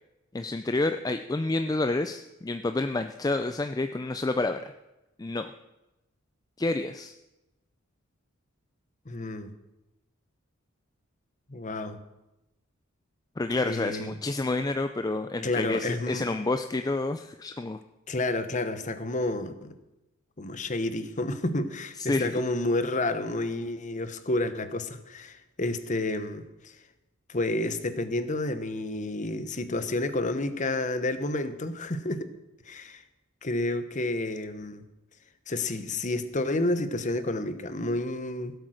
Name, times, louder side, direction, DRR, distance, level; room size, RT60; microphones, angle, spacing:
voice 1, 0.3-4.6 5.2-5.5 6.6-7.1 13.4-17.8 22.0-22.4, left 2 dB, 20° left, 8 dB, 0.4 m, -29 dB
voice 2, 9.1-9.5 11.5-12.0 13.6-14.1 15.4-16.3 18.1-19.7 20.4-26.8 27.3-32.3 32.7-33.0 33.4-34.9 35.5-38.5, left 2 dB, 35° left, 11 dB, 0.9 m, -30 dB
17.0 x 8.1 x 6.4 m, 0.97 s
head